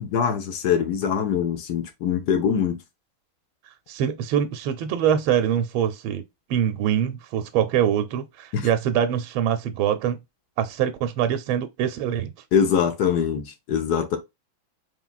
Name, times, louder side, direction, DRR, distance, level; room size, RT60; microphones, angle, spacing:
voice 1, 0.0-2.8 8.5-8.7 12.5-14.2, left 7 dB, 60° left, 1.2 m, -23 dB
voice 2, 3.9-6.2 6.5-10.2 10.6-12.3, right 9 dB, 90° right, 1.4 m, -24 dB
4.5 x 3.6 x 2.3 m
omnidirectional pair, 2.2 m